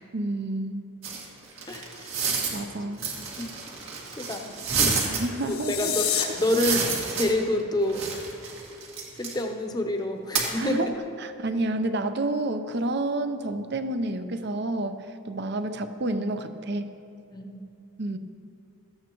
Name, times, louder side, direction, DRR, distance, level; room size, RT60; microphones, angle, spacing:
voice 1, 0.1-0.8 2.5-3.0 5.1-5.9 10.6-10.9 11.2-16.9 18.0-18.2, right 2 dB, 50° right, 9 dB, 0.6 m, -29 dB
sound 1, 1.0-2.6 3.0-5.2 6.0-7.6 7.9-9.4 10.3-10.5, right 5 dB, 65° right, 2.1 m, -29 dB
voice 2, 1.7-2.2 3.4-3.5 4.1-4.7 5.5-8.1 9.1-10.9 17.3-17.6, left 1 dB, 20° left, 4 dB, 0.7 m, -28 dB
sound 2, 5.3-6.2, left 9 dB, 90° left, 1.3 m, -28 dB
17.0 x 13.5 x 3.0 m, 2.7 s
head